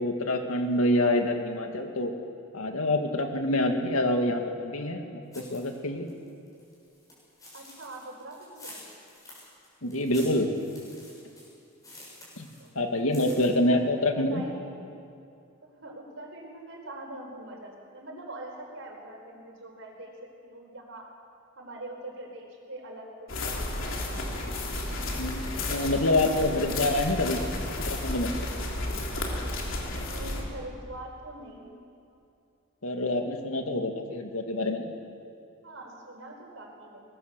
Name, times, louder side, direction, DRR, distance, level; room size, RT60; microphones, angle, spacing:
voice 1, 0.0-2.1 2.5-6.1 9.8-10.5 12.4-12.5 12.8-14.5 25.1-27.4 27.9-28.3 32.8-34.9, left 1 dB, 80° left, 4 dB, 2.2 m, -26 dB
sound 1, 5.3-5.8 6.1-12.7 13.0-13.5, left 1 dB, 15° left, 6.3 m, -49 dB
voice 2, 7.5-8.9 12.6-12.7 13.7-14.8 15.6-21.1 21.6-24.1 30.0-31.7 35.6-37.0, right 1 dB, 65° right, 1 dB, 4.6 m, -43 dB
sound 2, 23.3-30.4, left 2 dB, 65° left, 3.3 m, -32 dB
23.0 x 19.5 x 6.9 m, 2.6 s
head